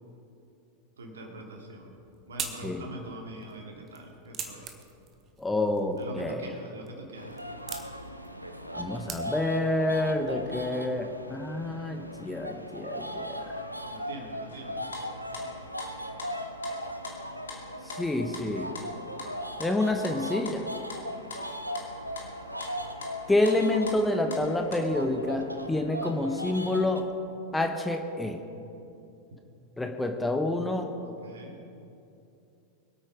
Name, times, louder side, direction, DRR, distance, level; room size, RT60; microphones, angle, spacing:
voice 1, 1.0-2.0 2.3-4.7 6.0-7.4 13.9-14.8 31.0-31.6, right 1 dB, 65° right, 1 dB, 2.6 m, -43 dB
sound 1, 1.7-9.7, right 6 dB, 30° right, 1.5 m, -44 dB
voice 2, 5.4-6.4 8.7-13.6 17.8-18.7 19.6-20.6 23.3-27.1 27.5-28.4 29.8-30.9, left 2 dB, 5° left, 4 dB, 1.1 m, -28 dB
sound 2, 7.1-27.0, equal, 90° right, 0.8 m, -38 dB
sound 3, 14.5-14.6 14.9-20.2 20.5-21.0 21.3-22.7 23.0-24.8, left 4 dB, 70° left, 2.5 m, -42 dB
24.0 x 8.8 x 5.1 m, 2.7 s
figure-of-eight pair, 90°, 0 cm